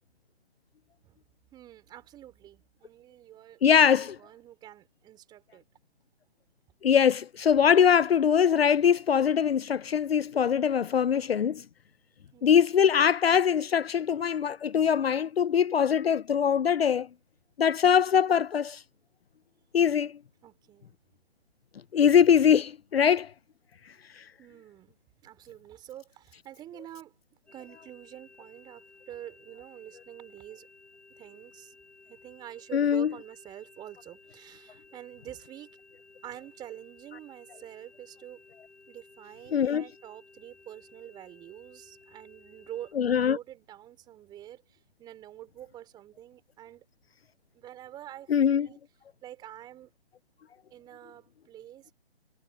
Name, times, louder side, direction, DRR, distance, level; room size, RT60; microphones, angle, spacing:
voice 1, 1.5-3.6 4.0-5.6 12.3-12.7 20.4-21.0 24.4-27.1 27.5-30.7 31.2-31.7 32.1-35.7 36.2-38.4 38.9-44.6 45.0-46.9 47.5-48.8 49.2-49.9 50.7-51.9, right 12 dB, 15° right, 5.3 m, -47 dB
voice 2, 3.6-4.2 6.8-11.6 12.4-17.1 17.6-18.8 19.7-20.1 21.9-23.3 24.2-24.3 32.7-33.1 39.5-39.8 43.0-43.4 48.3-48.7, left 8 dB, 65° left, 0.7 m, -22 dB
sound 1, 27.5-42.9, left 3 dB, 5° left, 6.4 m, -56 dB
hypercardioid pair, 155°, 33 cm